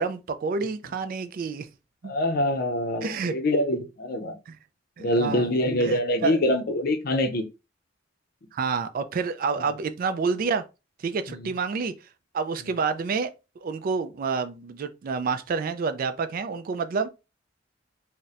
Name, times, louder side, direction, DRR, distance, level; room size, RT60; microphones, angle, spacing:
voice 1, 0.0-1.7 2.0-2.1 3.0-3.4 4.5-4.6 5.0-5.5 5.8-6.4 8.5-10.6 11.0-11.9 12.3-17.1, right 5 dB, 50° right, 0.3 m, -28 dB
voice 2, 2.0-4.3 5.0-7.4 11.3-11.4, left 1 dB, 50° left, 0.6 m, -25 dB
4.0 x 2.1 x 2.5 m
head